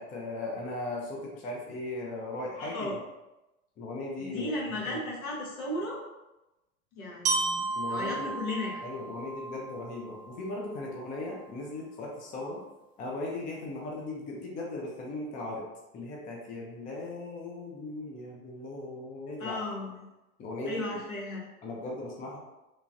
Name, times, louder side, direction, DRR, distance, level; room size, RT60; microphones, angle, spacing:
voice 1, 0.0-3.0 3.8-4.5 4.9-5.0 7.8-8.3 8.8-12.6 13.0-15.6 15.9-19.6 20.4-20.9 21.6-22.4, left 2 dB, 20° left, -2 dB, 0.5 m, -38 dB
voice 2, 2.6-3.0 4.2-6.0 6.9-8.8 19.4-20.0 20.7-21.5, left 2 dB, 75° left, -4 dB, 1.2 m, -35 dB
Glockenspiel, 7.2-11.2, right 3 dB, 15° right, 1.0 m, -34 dB
3.1 x 2.2 x 2.6 m, 0.99 s
hypercardioid pair, 95°, 42 cm